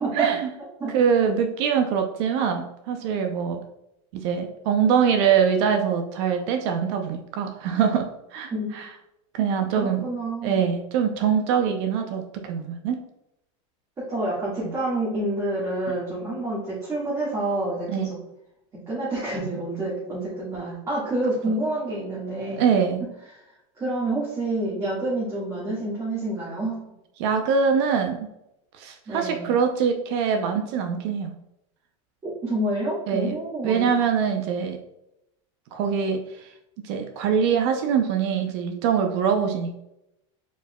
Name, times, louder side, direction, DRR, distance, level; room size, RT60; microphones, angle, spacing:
voice 1, 0.1-0.5 0.9-3.6 4.1-8.9 9.3-10.0 10.4-13.0 17.9-18.1 21.5-21.6 22.6-23.1 27.2-28.3 28.8-31.3 33.1-33.4 33.6-34.8 35.7-36.5 36.8-39.7, right 7 dB, 60° right, 5 dB, 0.6 m, -23 dB
voice 2, 9.7-10.7 14.0-18.2 18.7-22.6 23.7-26.8 29.1-29.6 32.2-33.9, right 2 dB, 20° right, -9 dB, 1.7 m, -28 dB
4.6 x 4.5 x 2.2 m, 0.85 s
supercardioid pair, 145°, 16 cm